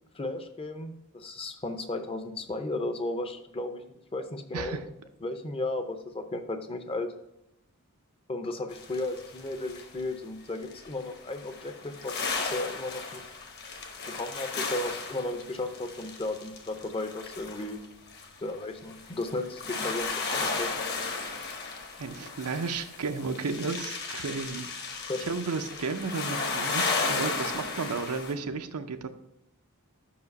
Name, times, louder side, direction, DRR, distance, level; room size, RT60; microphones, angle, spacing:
voice 1, 0.1-3.8 4.1-4.8 5.2-7.1 8.3-13.2 14.1-17.8 18.4-20.7 25.1-25.2, left 2 dB, 25° left, 8 dB, 0.6 m, -34 dB
sound 1, 8.7-10.0 10.7-28.3, left 4 dB, 45° left, 1.0 m, -35 dB
voice 2, 22.0-24.7 25.2-29.1, right 4 dB, 85° right, 8 dB, 0.6 m, -33 dB
5.8 x 4.8 x 5.3 m, 0.81 s
head